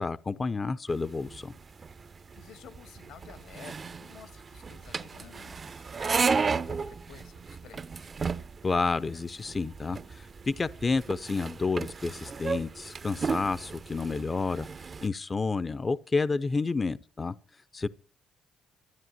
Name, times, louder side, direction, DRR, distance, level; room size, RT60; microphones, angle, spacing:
voice 1, 0.0-1.5 8.6-17.9, left 4 dB, 35° left, 0.6 m, -30 dB
sound 1, 0.9-15.1, right 5 dB, 40° right, 0.7 m, -34 dB
voice 2, 2.3-8.1, left 7 dB, 85° left, 1.9 m, -52 dB
13.0 x 9.0 x 9.3 m
supercardioid pair, 70°, 0 cm